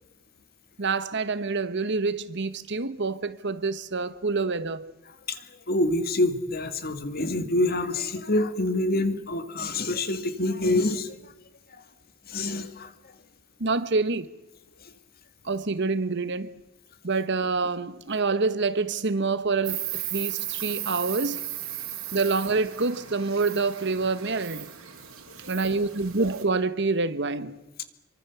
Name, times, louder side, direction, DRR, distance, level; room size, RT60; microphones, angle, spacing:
voice 1, 0.8-4.9 13.6-14.3 15.4-16.5 17.0-21.4 22.1-24.7 25.5-27.6, right 3 dB, 55° right, 1.2 m, -27 dB
voice 2, 5.3-11.2 12.3-12.9, left 2 dB, 45° left, 2.1 m, -26 dB
Insect, 19.6-26.4, right 12 dB, 90° right, 4.4 m, -36 dB
27.0 x 24.0 x 7.1 m
head